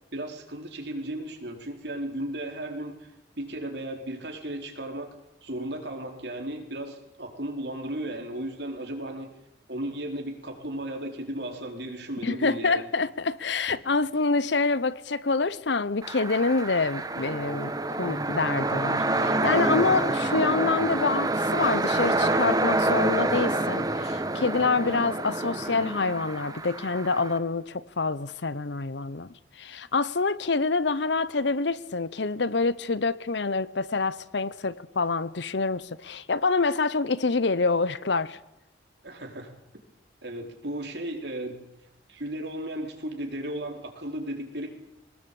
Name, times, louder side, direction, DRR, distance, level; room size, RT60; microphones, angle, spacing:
voice 1, 0.1-3.1 3.4-5.1 5.4-9.3 9.7-12.9 13.6-13.7 39.0-39.5 40.2-41.6 42.1-44.7, right 1 dB, 65° right, 4.4 m, -35 dB
voice 2, 12.2-38.4, left 4 dB, 75° left, 0.9 m, -26 dB
sound 1, 16.0-27.4, right 2 dB, 20° right, 1.4 m, -27 dB
21.5 x 19.5 x 8.6 m
head